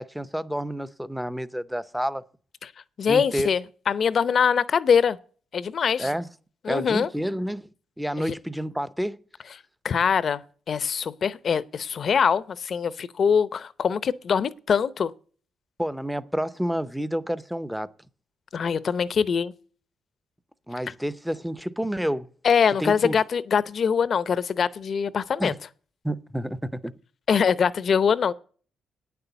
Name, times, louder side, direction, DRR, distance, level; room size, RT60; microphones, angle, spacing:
voice 1, 0.0-2.2 3.1-3.5 6.0-6.3 6.7-7.7 8.0-9.2 15.8-17.9 20.7-22.3 22.8-23.2 25.4-25.6 26.0-26.9, equal, 5° right, 0.6 m, -29 dB
voice 2, 3.0-5.2 5.5-6.1 6.6-7.1 8.2-8.3 9.8-10.4 10.7-15.1 18.5-19.5 22.4-25.5 27.3-28.3, left 6 dB, 50° left, 0.7 m, -23 dB
9.2 x 6.9 x 8.1 m
cardioid pair, 90°, 0 cm